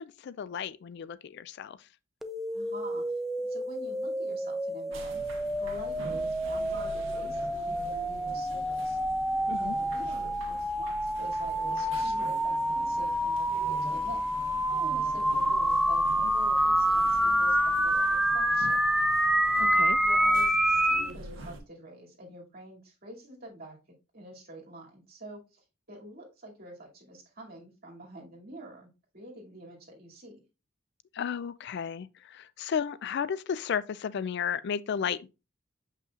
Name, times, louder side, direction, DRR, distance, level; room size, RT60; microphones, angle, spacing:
voice 1, 0.0-1.9 9.4-9.8 19.5-20.0 31.1-35.3, left 7 dB, 60° left, 0.4 m, -34 dB
sound 1, 2.2-21.1, equal, ahead, 0.4 m, -27 dB
voice 2, 2.5-3.2 3.5-5.2 5.6-9.0 9.6-18.8 19.6-23.8 24.1-30.4, right 1 dB, 50° right, 2.5 m, -47 dB
sound 2, 4.9-21.6, right 1 dB, 90° right, 1.5 m, -45 dB
7.1 x 5.5 x 2.4 m
head